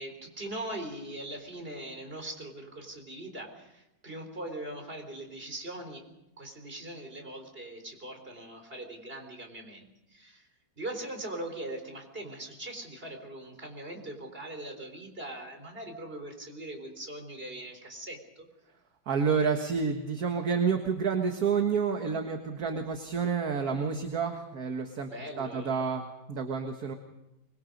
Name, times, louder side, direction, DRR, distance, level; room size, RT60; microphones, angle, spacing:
voice 1, 0.0-6.0 6.4-9.8 10.1-10.5 10.8-18.5 25.0-25.8, right 1 dB, 30° right, 4 dB, 4.1 m, -41 dB
voice 2, 19.1-25.1 25.4-26.9, right 6 dB, 50° right, 4 dB, 1.9 m, -29 dB
24.5 x 22.0 x 5.3 m, 0.89 s
omnidirectional pair, 2.1 m